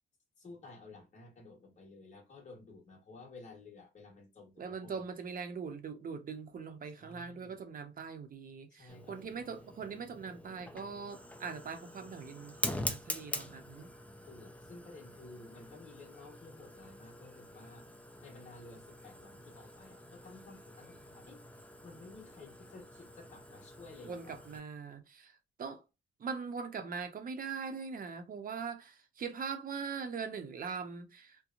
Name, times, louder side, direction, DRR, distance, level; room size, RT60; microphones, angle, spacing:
voice 1, 0.4-5.0 6.9-7.6 8.7-9.2 14.3-17.8 18.2-21.4 21.8-24.4, left 3 dB, 35° left, 1.3 m, -53 dB
voice 2, 4.6-13.9 24.0-25.3 25.6-25.8 26.2-31.4, right 5 dB, 45° right, 0.7 m, -41 dB
Fire, 8.9-24.6, left 1 dB, 5° left, 0.5 m, -45 dB
2.8 x 2.2 x 2.5 m
cardioid pair, 90°, 20 cm